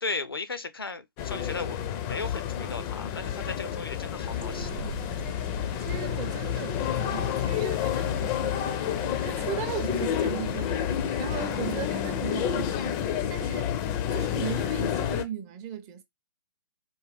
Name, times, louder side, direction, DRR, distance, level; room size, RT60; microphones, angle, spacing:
voice 1, 0.0-4.8, left 3 dB, 85° left, 0.5 m, -36 dB
sound 1, 1.2-15.2, left 9 dB, 25° left, 0.4 m, -29 dB
sound 2, 4.2-11.8, right 6 dB, 75° right, 0.5 m, -44 dB
voice 2, 5.8-13.0 13.3-13.7 14.1-16.0, right 9 dB, 25° right, 0.5 m, -37 dB
3.4 x 2.2 x 3.2 m
figure-of-eight pair, 120°, 12 cm